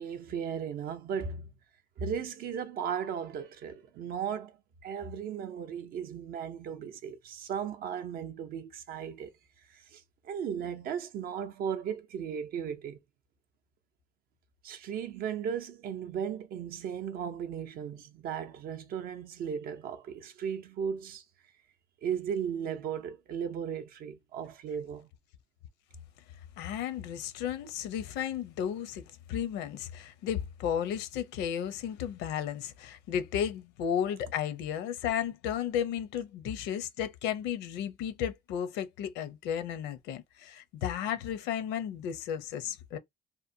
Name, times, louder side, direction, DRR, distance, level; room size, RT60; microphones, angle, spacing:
voice 1, 0.0-1.5 2.0-4.6 4.8-9.3 9.7-13.0 14.6-21.2 22.0-25.1, right 7 dB, 55° right, 0.5 m, -36 dB
voice 2, 26.6-29.0 29.3-43.0, left 9 dB, 75° left, 0.6 m, -33 dB
2.9 x 2.1 x 2.6 m
cardioid pair, 110°, 18 cm